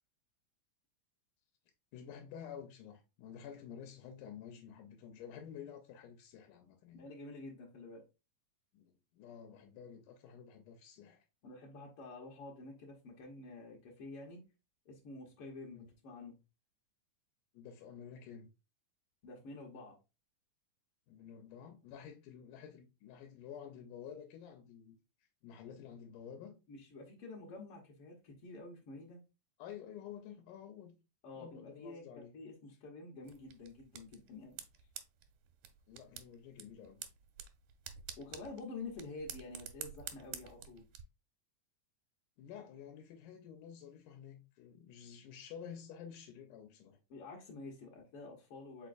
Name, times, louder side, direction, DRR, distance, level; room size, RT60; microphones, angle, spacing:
voice 1, 1.9-7.1 8.7-11.2 15.7-15.9 17.5-18.5 21.1-25.0 25.4-26.6 29.6-31.0 31.4-32.4 35.9-37.0 42.4-47.0, left 8 dB, 85° left, 2.1 m, -51 dB
voice 2, 6.9-8.0 11.4-14.4 14.8-16.4 19.2-19.9 26.7-29.2 31.2-34.6 38.2-40.9 47.1-48.9, left 3 dB, 70° left, 1.4 m, -49 dB
sound 1, 33.2-41.0, right 9 dB, 85° right, 2.2 m, -50 dB
4.9 x 4.0 x 2.4 m
omnidirectional pair, 3.5 m